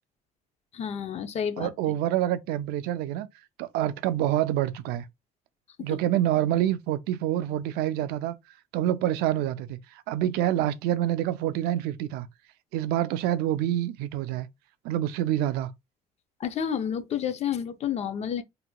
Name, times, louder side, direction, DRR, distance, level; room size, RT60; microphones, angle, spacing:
voice 1, 0.7-1.7 5.8-6.0 16.4-18.4, left 8 dB, 45° left, 0.5 m, -30 dB
voice 2, 1.6-3.3 3.6-5.1 5.8-8.4 8.7-12.3 12.7-14.5 14.8-15.7, right 12 dB, 90° right, 0.4 m, -27 dB
3.3 x 2.9 x 2.2 m
cardioid pair, 125°, 16 cm